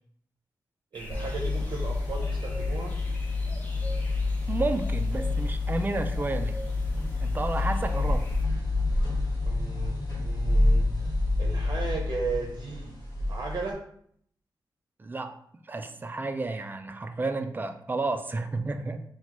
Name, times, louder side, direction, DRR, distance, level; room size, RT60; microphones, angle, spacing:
sound 1, 0.9-8.4, equal, 25° left, 0.8 m, -43 dB
voice 1, 0.9-2.9 9.4-10.9 11.4-12.9 13.3-13.8, right 4 dB, 65° right, 0 dB, 0.6 m, -35 dB
sound 2, 1.1-13.7, left 2 dB, 50° left, 1.3 m, -28 dB
voice 2, 4.5-6.6 7.2-8.3 15.0-15.4 15.7-19.0, right 3 dB, 25° right, 8 dB, 0.4 m, -31 dB
6.0 x 2.3 x 3.0 m, 0.66 s
wide cardioid pair, 120°, 8 cm